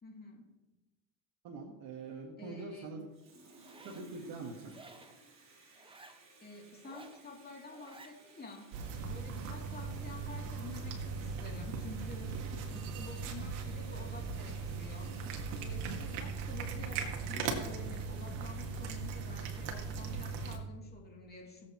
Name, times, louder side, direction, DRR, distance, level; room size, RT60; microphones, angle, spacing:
voice 1, 0.0-0.5 2.4-2.9 6.4-8.7 9.1-15.3 15.5-21.7, left 3 dB, 25° left, 0 dB, 2.9 m, -49 dB
voice 2, 1.4-3.1 3.8-4.8, right 3 dB, 55° right, -1 dB, 1.9 m, -44 dB
Water tap faucet, 3.0-19.9, right 2 dB, 40° right, 3.7 m, -60 dB
Zipper (clothing), 3.5-4.1 4.7-5.2 5.8-6.2 6.8-7.2 7.7-8.2, right 3 dB, 10° right, 1.0 m, -55 dB
sound 1, 8.7-20.6, right 5 dB, 85° right, 1.8 m, -39 dB
21.5 x 7.8 x 3.1 m, 1.1 s
supercardioid pair, 100°, 42 cm